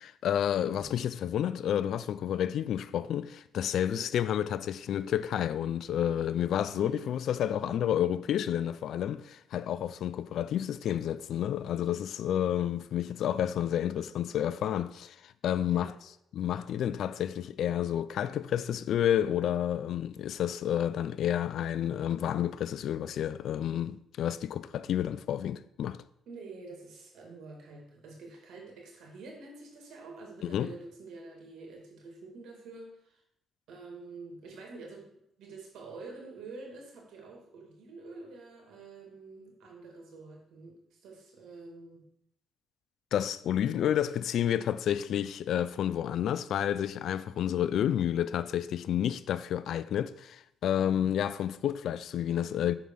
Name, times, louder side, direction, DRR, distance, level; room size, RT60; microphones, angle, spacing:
voice 1, 0.0-15.9 16.3-26.0 30.4-30.7 43.1-52.7, left 10 dB, 70° left, 0.3 m, -30 dB
voice 2, 0.6-1.0 3.7-4.1 6.7-7.1 15.7-16.0 26.3-33.2 33.7-35.1 35.4-42.0 50.8-51.2, right 3 dB, 80° right, 2.2 m, -47 dB
5.9 x 4.8 x 5.5 m
cardioid pair, 90°, 0 cm